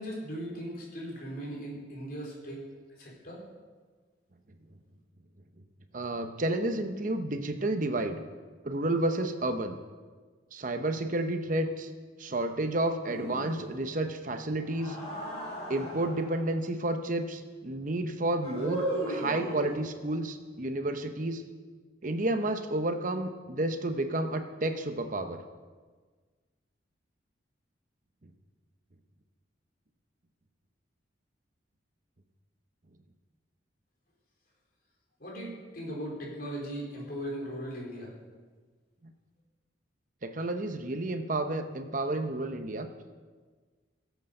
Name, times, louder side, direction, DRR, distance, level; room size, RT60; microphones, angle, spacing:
voice 1, 0.0-2.7 3.0-3.4 35.2-38.1, equal, 55° left, -3 dB, 4.3 m, -38 dB
voice 2, 5.9-8.2 8.6-9.8 10.5-11.9 12.2-15.0 15.7-21.4 22.0-25.4 40.2-42.9, right 1 dB, 45° right, 7 dB, 0.9 m, -31 dB
sound 1, 13.1-13.9 14.6-16.4 18.4-19.9, right 1 dB, 30° left, 5.7 m, -36 dB
17.5 x 8.2 x 6.6 m, 1.4 s
head